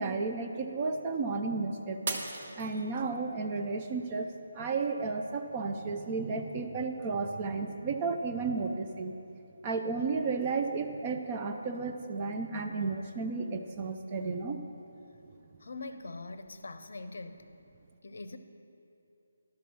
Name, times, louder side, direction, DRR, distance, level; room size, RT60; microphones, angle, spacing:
voice 1, 0.0-2.3 2.6-9.1 9.6-14.6, right 4 dB, 25° right, 4 dB, 0.5 m, -33 dB
Shatter, 2.1-3.3 3.9-4.3 4.9-5.0, right 3 dB, 40° right, 0.9 m, -37 dB
voice 2, 15.6-17.5 18.0-18.4, left 3 dB, 55° left, 10 dB, 0.6 m, -42 dB
11.5 x 6.7 x 6.2 m, 2.8 s
figure-of-eight pair, 150°, 0 cm